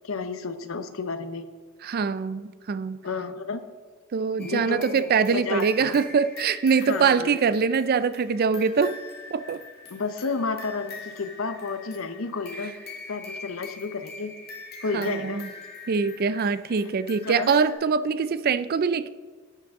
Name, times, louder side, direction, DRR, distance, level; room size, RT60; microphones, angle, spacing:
voice 1, 0.0-1.5 3.0-3.6 4.4-6.0 6.9-7.4 9.9-12.7 13.1-14.3 14.8-15.4 17.2-17.5, left 4 dB, 70° left, 10 dB, 0.8 m, -31 dB
voice 2, 1.8-3.0 4.1-8.9 9.3-9.6 14.9-15.5 15.9-19.1, right 5 dB, 45° right, 15 dB, 0.4 m, -23 dB
sound 1, 4.4-17.7, left 4 dB, 50° left, 2.1 m, -43 dB
12.0 x 8.8 x 3.6 m, 1.5 s
head